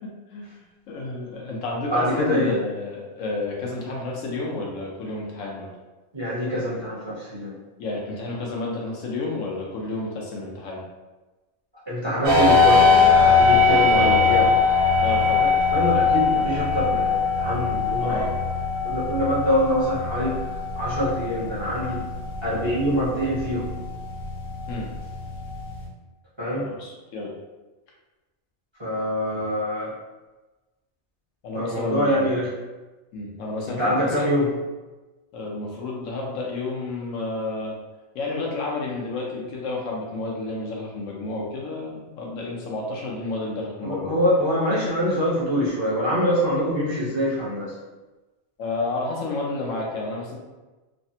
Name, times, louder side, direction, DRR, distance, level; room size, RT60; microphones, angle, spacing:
voice 1, 0.0-0.5 0.9-5.7 7.8-10.8 13.5-14.4 15.0-15.5 18.0-18.3 24.7-24.9 26.5-27.3 29.3-29.5 31.4-32.4 33.1-34.3 35.3-37.7 38.1-44.2 48.6-50.4, left 2 dB, 80° left, -2 dB, 1.0 m, -30 dB
voice 2, 1.9-2.5 6.1-7.5 11.9-14.5 15.4-18.2 18.8-22.0 22.4-23.6 26.4-26.6 28.8-29.9 31.5-32.5 33.7-34.5 43.8-47.7, equal, 25° right, -9 dB, 0.7 m, -25 dB
sound 1, 12.2-25.9, left 4 dB, 60° right, 1.2 m, -21 dB
3.2 x 2.0 x 2.7 m, 1.2 s
omnidirectional pair, 1.3 m